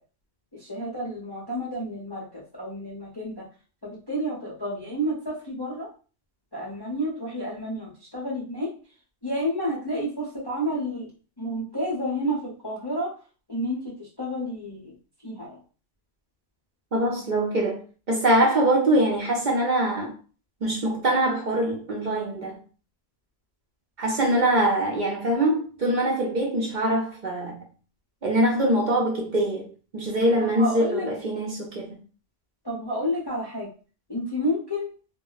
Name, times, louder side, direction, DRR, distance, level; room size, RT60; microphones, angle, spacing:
voice 1, 0.5-3.4 4.1-5.9 6.5-8.7 9.2-11.1 11.4-13.1 13.5-14.9 15.2-15.6 30.4-31.1 32.6-33.7 34.1-34.9, equal, 25° left, 0.5 m, -30 dB
voice 2, 16.9-17.8 18.1-20.1 20.6-22.6 24.0-27.6 28.2-29.7 29.9-32.0, right 1 dB, 50° right, 0.6 m, -23 dB
2.2 x 2.0 x 3.8 m
omnidirectional pair, 1.2 m